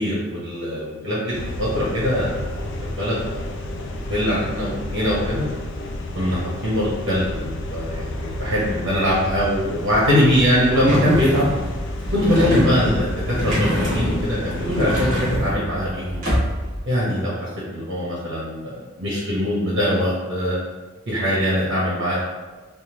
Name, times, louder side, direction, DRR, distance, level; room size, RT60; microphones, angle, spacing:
voice 1, 0.0-2.5 2.8-5.4 6.1-11.5 12.1-16.2 16.8-20.5 21.1-22.2, equal, 90° right, -7 dB, 0.9 m, -22 dB
sound 1, 1.3-15.4, left 1 dB, 60° left, 0.3 m, -31 dB
sound 2, 10.8-16.8, equal, 40° right, 1.2 m, -25 dB
3.5 x 2.0 x 3.0 m, 1.3 s
head